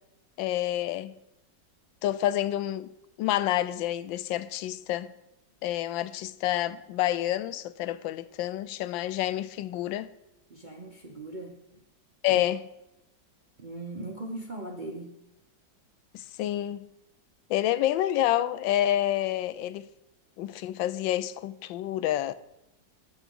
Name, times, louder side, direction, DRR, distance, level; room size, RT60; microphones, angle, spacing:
voice 1, 0.4-1.1 2.0-2.9 3.2-5.1 5.6-10.1 12.2-12.6 16.1-16.9 17.5-19.9 20.4-22.3, left 13 dB, 85° left, 1.3 m, -28 dB
voice 2, 10.5-11.6 12.3-12.4 13.6-15.2, right 2 dB, 40° right, 0.7 m, -39 dB
20.0 x 7.1 x 3.8 m
omnidirectional pair, 2.0 m